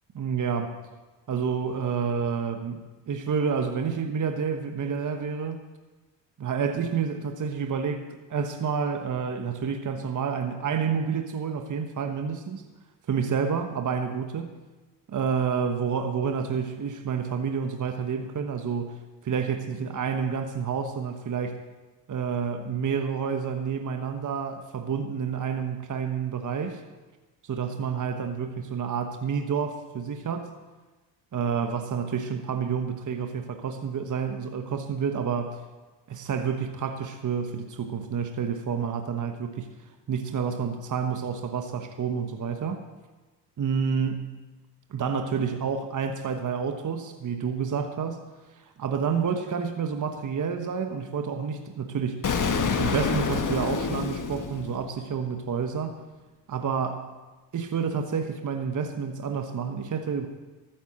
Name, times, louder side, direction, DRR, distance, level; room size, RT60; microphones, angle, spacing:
voice 1, 0.1-0.8 1.3-5.6 6.4-12.7 13.1-14.5 15.1-19.0 19.2-21.6 22.1-26.8 27.4-30.5 31.3-35.6 36.1-39.7 40.1-42.8 43.6-44.3 44.9-48.2 48.8-52.2 52.8-56.0 56.5-57.0 57.5-60.3, right 6 dB, 40° right, 7 dB, 1.2 m, -29 dB
Explosion, 52.2-55.1, left 5 dB, 40° left, 1.6 m, -27 dB
13.5 x 9.2 x 6.3 m, 1.2 s
supercardioid pair, 60°, 48 cm